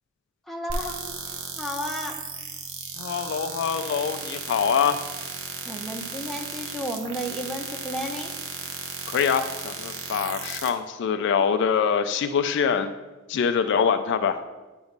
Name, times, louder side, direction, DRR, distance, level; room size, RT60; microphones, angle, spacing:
voice 1, 0.5-0.9 1.6-2.2 5.7-8.3, equal, ahead, 0 dB, 0.7 m, -32 dB
sound 1, 0.7-10.7, right 5 dB, 75° right, 0.8 m, -35 dB
voice 2, 3.0-5.0 9.1-12.9 13.3-14.4, left 7 dB, 60° left, 9 dB, 0.3 m, -24 dB
8.9 x 3.1 x 5.1 m, 1.2 s
head